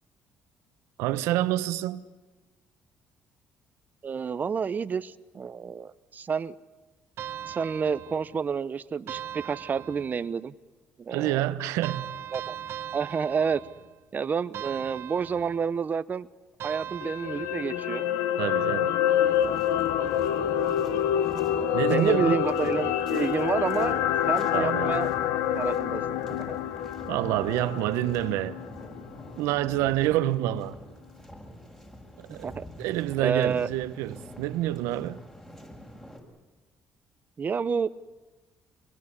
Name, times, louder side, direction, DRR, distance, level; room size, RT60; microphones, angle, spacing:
voice 1, 1.0-2.0 11.1-12.1 18.4-19.0 21.7-22.4 24.5-25.0 27.0-28.6 29.4-30.8 32.2-35.2, right 14 dB, 85° right, 1.2 m, -27 dB
voice 2, 4.0-6.5 7.5-10.5 11.0-11.5 12.3-12.6 12.9-13.6 14.1-16.3 16.6-18.1 20.4-20.7 21.9-25.1 25.5-26.6 32.4-32.7 33.2-33.7 37.4-37.9, right 6 dB, 40° right, 1.0 m, -29 dB
sound 1, 7.2-8.5 9.1-10.4 11.8-14.0 14.5-15.8 16.6-17.9, right 10 dB, 65° right, 1.6 m, -40 dB
sound 2, 17.0-29.3 29.7-29.8, left 10 dB, 90° left, 1.3 m, -27 dB
sound 3, 19.2-36.2, equal, 10° left, 7.1 m, -46 dB
26.5 x 21.0 x 10.0 m
supercardioid pair, 80°, 5 cm